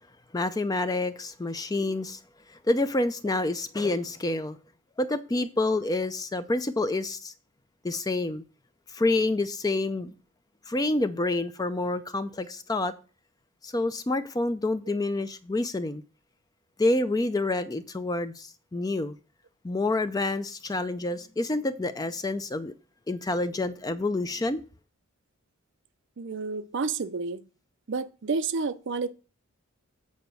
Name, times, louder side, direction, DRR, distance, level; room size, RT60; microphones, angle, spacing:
voice 1, 0.3-2.2 2.5-4.6 5.0-7.3 7.8-8.4 8.9-10.1 10.7-12.9 13.6-16.0 16.8-19.1 19.6-22.7 23.1-24.6, left 2 dB, 15° left, 0.4 m, -28 dB
voice 2, 26.2-27.4 27.9-29.1, right 4 dB, 55° right, 0.5 m, -30 dB
7.9 x 4.2 x 6.9 m
head